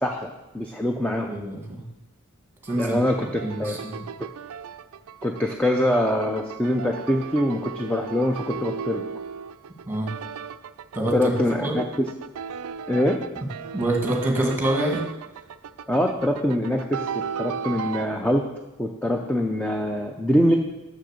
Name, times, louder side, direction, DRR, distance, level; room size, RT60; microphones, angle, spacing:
voice 1, 0.0-1.3 2.8-3.8 5.2-9.0 11.1-12.1 12.9-13.2 15.9-17.1 17.4-18.4 18.8-20.6, left 1 dB, 5° left, 2 dB, 0.5 m, -24 dB
voice 2, 1.3-1.9 2.6-4.0 9.9-10.1 10.9-11.3 11.6-11.8 13.4-13.5 13.7-15.0, right 1 dB, 10° right, 0 dB, 1.7 m, -26 dB
sound 1, 2.7-18.1, right 7 dB, 80° right, 0.4 m, -36 dB
6.8 x 6.5 x 6.5 m, 1.0 s
head